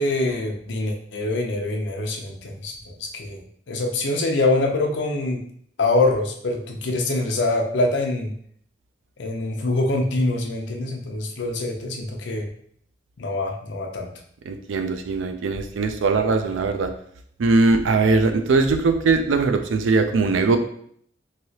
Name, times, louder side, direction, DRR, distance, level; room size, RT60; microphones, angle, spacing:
voice 1, 0.0-3.4 3.7-5.4 5.8-8.3 9.2-12.5 13.2-14.1, left 2 dB, 65° left, 2 dB, 0.5 m, -24 dB
voice 2, 14.5-16.9 17.4-20.6, right 3 dB, 80° right, 8 dB, 0.4 m, -20 dB
3.1 x 2.7 x 2.8 m, 0.63 s
head